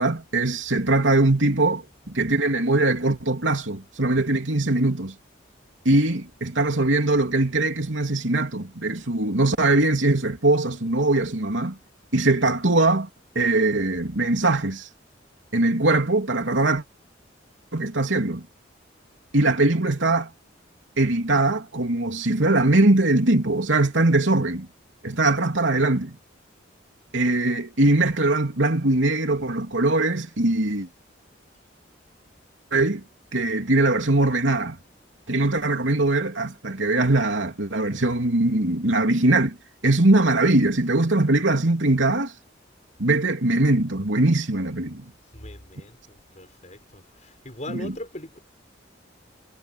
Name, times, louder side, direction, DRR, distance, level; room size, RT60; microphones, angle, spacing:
voice 1, 0.0-5.1 5.8-11.8 12.1-13.1 13.3-14.9 15.5-16.8 17.7-18.4 19.3-20.3 21.0-24.7 25.0-26.2 27.1-30.9 32.7-33.0 33.3-34.8 35.3-39.6 39.8-42.3 43.0-45.1, right 2 dB, 80° right, 3.1 m, -21 dB
voice 2, 45.3-45.9 46.4-47.0 47.4-48.4, left 1 dB, 35° left, 6.5 m, -38 dB
head